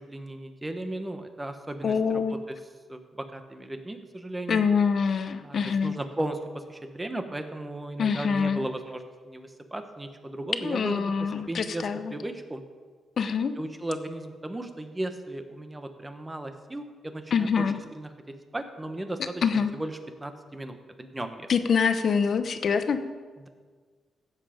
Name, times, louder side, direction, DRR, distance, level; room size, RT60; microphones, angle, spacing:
voice 1, 0.1-2.6 2.9-4.7 5.4-5.6 5.8-12.6 13.6-17.5 17.9-18.1 18.5-21.5, right 1 dB, 15° right, 7 dB, 1.0 m, -36 dB
voice 2, 1.8-2.4 4.5-5.9 8.0-8.7 10.6-12.1 13.2-13.5 17.3-17.8 19.4-19.7 21.5-23.0, left 6 dB, 50° left, 9 dB, 0.8 m, -25 dB
16.0 x 7.5 x 5.1 m, 1.5 s
cardioid pair, 130°, 0 cm